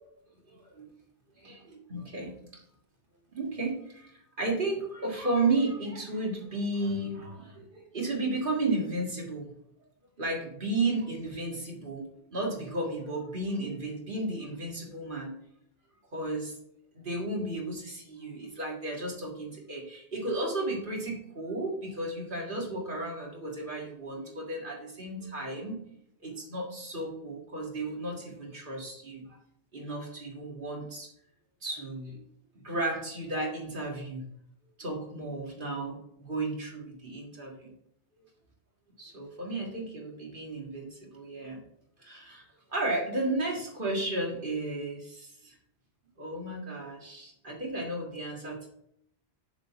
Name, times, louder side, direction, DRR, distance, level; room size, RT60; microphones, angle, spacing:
voice 1, 0.5-0.9 1.4-2.4 3.3-4.1 4.4-9.5 10.2-12.0 12.3-15.3 16.1-16.5 16.9-25.8 26.2-29.2 29.7-31.1 31.6-32.2 32.6-34.2 34.8-37.7 39.0-41.6 42.0-45.5 46.2-48.7, right 2 dB, 50° right, -1 dB, 2.0 m, -33 dB
7.1 x 3.6 x 5.8 m, 0.71 s
omnidirectional pair, 1.1 m